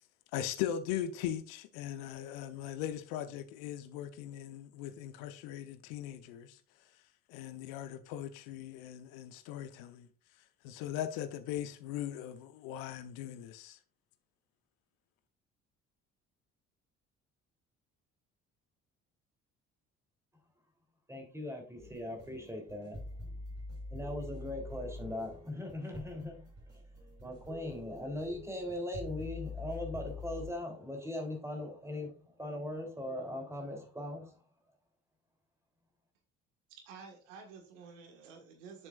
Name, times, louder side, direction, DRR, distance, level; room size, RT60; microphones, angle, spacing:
voice 1, 0.3-6.6 7.3-10.1 10.6-13.8, left 10 dB, 65° left, 0.9 m, -39 dB
voice 2, 21.1-23.4 23.9-26.5 27.2-34.4, left 1 dB, 5° right, 3.3 m, -40 dB
sound 1, 21.8-30.5, left 2 dB, 40° right, 4.6 m, -45 dB
voice 3, 36.7-38.9, right 5 dB, 70° right, 1.7 m, -51 dB
10.5 x 7.1 x 2.4 m
figure-of-eight pair, 50°, 38 cm